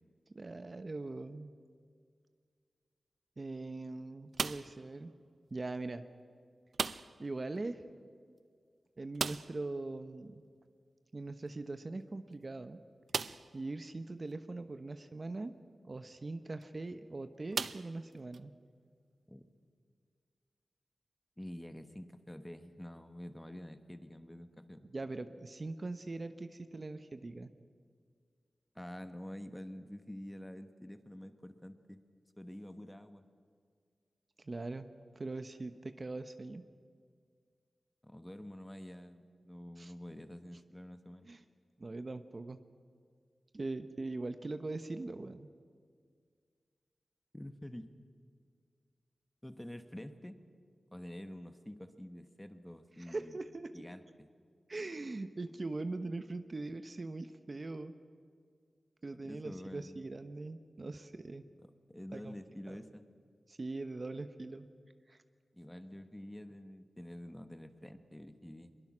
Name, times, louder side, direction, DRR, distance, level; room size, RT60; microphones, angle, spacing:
voice 1, 0.3-1.5 3.4-5.1 5.5-6.0 7.2-7.8 9.0-10.4 11.1-12.8 13.2-15.5 15.9-18.5 24.9-27.5 34.4-34.9 35.1-36.6 39.8-39.9 41.2-41.4 41.8-42.6 43.5-45.5 53.0-53.8 54.7-57.9 59.0-61.4 62.1-62.3 62.7-62.8 63.5-64.7 65.1-65.2, right 2 dB, 40° right, 10 dB, 0.9 m, -41 dB
sound 1, 4.3-4.9 6.7-7.3 7.6-7.7 8.0-8.1 9.1-9.7 11.5-11.6 12.2-12.3 13.1-13.6 14.3-14.4 16.4-16.6 17.5-18.4, right 5 dB, 75° right, 0.5 m, -37 dB
voice 2, 21.4-24.9 28.7-32.0 32.4-33.2 38.0-41.3 47.3-47.9 49.4-50.4 50.9-53.4 53.7-54.3 59.2-60.0 61.6-63.0 65.5-68.7, left 1 dB, 10° left, 9 dB, 1.3 m, -48 dB
23.0 x 22.0 x 6.2 m, 2.1 s
wide cardioid pair, 75°, 0 cm